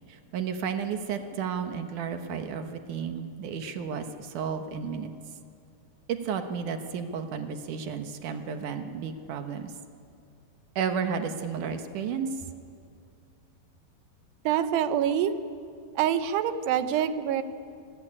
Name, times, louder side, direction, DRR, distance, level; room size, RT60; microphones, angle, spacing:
voice 1, 0.1-5.1 6.1-9.7 10.8-12.4, right 6 dB, 65° right, 7 dB, 2.3 m, -32 dB
voice 2, 14.4-15.3 16.0-17.4, right 9 dB, 90° right, 10 dB, 3.1 m, -25 dB
26.5 x 19.0 x 10.0 m, 2.4 s
omnidirectional pair, 4.7 m